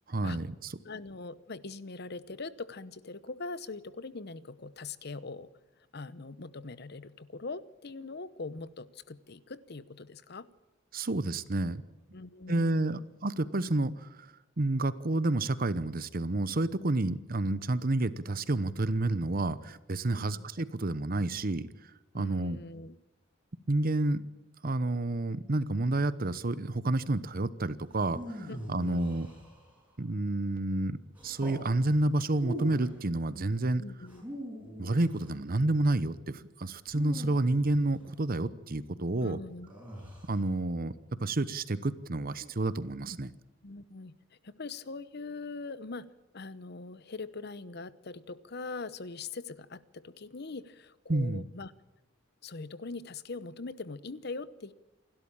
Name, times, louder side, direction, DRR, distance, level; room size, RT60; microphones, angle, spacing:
voice 1, 0.1-0.7 10.9-11.8 12.5-14.1 14.6-21.7 22.1-22.6 23.7-24.2 24.6-29.3 30.0-33.8 34.8-39.4 40.2-40.9 41.2-43.3 51.1-51.4, right 2 dB, 50° right, 16 dB, 0.9 m, -29 dB
voice 2, 0.8-5.5 5.9-10.5 12.1-13.0 20.1-20.4 22.1-22.9 28.5-29.2 33.8-34.2 39.2-39.7 43.6-46.1 46.3-51.7 52.4-54.7, left 3 dB, 55° left, 16 dB, 0.9 m, -42 dB
sound 1, 27.9-29.9 31.1-31.6 32.3-33.0 34.0-35.4 36.9-38.1 39.7-40.4, equal, 10° right, 6.9 m, -43 dB
28.0 x 12.5 x 8.8 m, 0.98 s
head